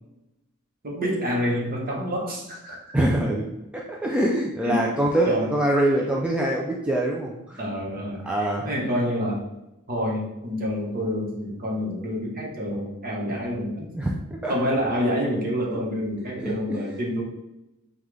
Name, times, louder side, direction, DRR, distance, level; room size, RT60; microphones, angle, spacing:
voice 1, 0.8-2.8 4.6-4.9 5.2-5.5 7.6-9.4 9.9-13.9 14.5-17.2, equal, 40° right, -2 dB, 1.1 m, -27 dB
voice 2, 2.9-7.6 8.2-8.7 11.9-12.0 13.3-13.4 13.9-14.1 14.4-14.5 15.7-15.8 16.4-16.9, right 1 dB, 5° right, -3 dB, 0.4 m, -24 dB
5.6 x 2.4 x 3.2 m, 0.94 s
head